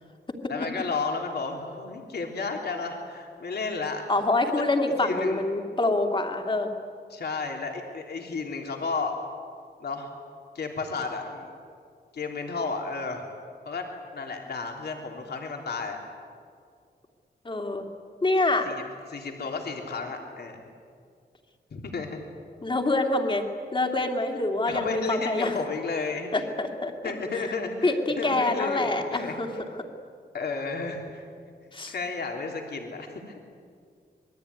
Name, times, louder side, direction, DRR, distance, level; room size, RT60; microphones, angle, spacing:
voice 1, 0.5-4.0 5.0-5.4 7.1-9.1 9.8-10.1 10.5-11.5 12.1-13.2 13.6-13.9 14.1-16.0 18.6-18.8 19.1-20.6 21.7-22.2 24.7-26.4 27.0-29.3 30.3-31.2 31.9-33.1, left 4 dB, 65° left, 2 dB, 3.3 m, -32 dB
voice 2, 4.1-6.7 17.4-17.8 18.2-18.7 22.6-23.4 23.7-25.6 26.3-27.5 27.8-29.5 31.7-31.9, left 2 dB, 30° left, 3 dB, 2.5 m, -26 dB
26.0 x 22.0 x 9.7 m, 2.2 s
wide cardioid pair, 175°, 18 cm